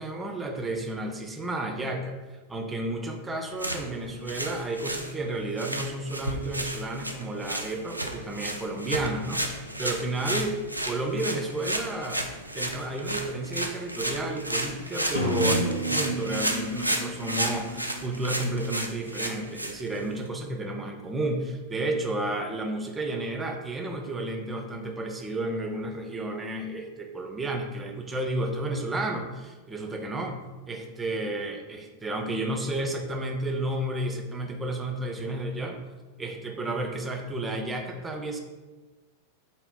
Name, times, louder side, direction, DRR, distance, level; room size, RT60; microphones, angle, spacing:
voice 1, 0.0-2.2 2.5-12.2 12.5-30.4 30.7-35.8 36.2-38.4, right 2 dB, 15° right, 3 dB, 0.4 m, -32 dB
sound 1, 3.5-20.3, right 1 dB, 85° right, 0.3 m, -33 dB
sound 2, 15.1-18.9, equal, 75° left, 0.4 m, -32 dB
3.8 x 2.1 x 3.6 m, 1.2 s
figure-of-eight pair, 90°, 0 cm